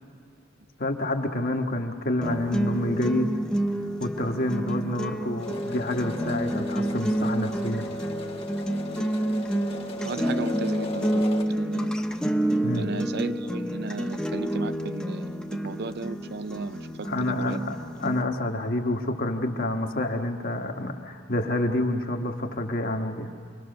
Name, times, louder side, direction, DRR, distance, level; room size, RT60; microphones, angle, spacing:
voice 1, 0.8-3.3 4.0-7.8 12.6-12.9 17.0-23.3, left 1 dB, 50° left, 4 dB, 1.5 m, -28 dB
sound 1, 2.2-18.2, right 1 dB, 5° left, 0.9 m, -29 dB
sound 2, 5.4-11.4, equal, 30° left, 1.3 m, -37 dB
voice 2, 10.0-12.0 12.7-17.6, right 3 dB, 55° right, 13 dB, 0.5 m, -35 dB
26.5 x 22.5 x 6.6 m, 2.2 s
head